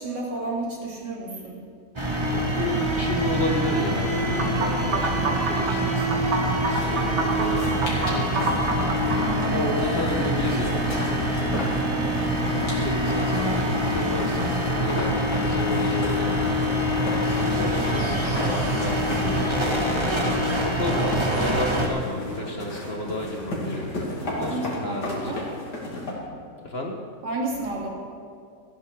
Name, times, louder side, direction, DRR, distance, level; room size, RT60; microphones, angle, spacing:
voice 1, 0.0-1.6 9.1-10.2 24.4-25.4 27.2-27.9, right 2 dB, 75° right, -3 dB, 3.3 m, -31 dB
sound 1, 2.0-21.9, equal, 15° right, 1.5 m, -25 dB
voice 2, 2.3-6.1 6.4-8.6 9.4-11.6 12.4-16.6 17.4-19.8 20.6-25.5 26.6-27.0, left 1 dB, 40° left, 1 dB, 1.3 m, -32 dB
sound 2, 4.4-9.5, right 3 dB, 45° right, 1.4 m, -28 dB
sound 3, 6.8-26.1, left 1 dB, 65° left, 3.3 m, -35 dB
15.0 x 9.8 x 6.1 m, 2.2 s
omnidirectional pair, 1.9 m